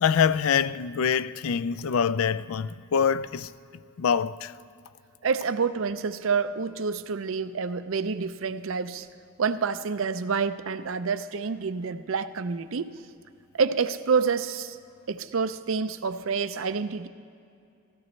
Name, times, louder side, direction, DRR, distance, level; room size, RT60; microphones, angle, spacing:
voice 1, 0.0-3.5 4.0-4.5, left 7 dB, 80° left, 0.4 m, -25 dB
voice 2, 5.2-9.1 9.4-12.9 13.6-14.8 15.1-17.1, right 5 dB, 70° right, 0.5 m, -28 dB
18.5 x 16.0 x 3.2 m
head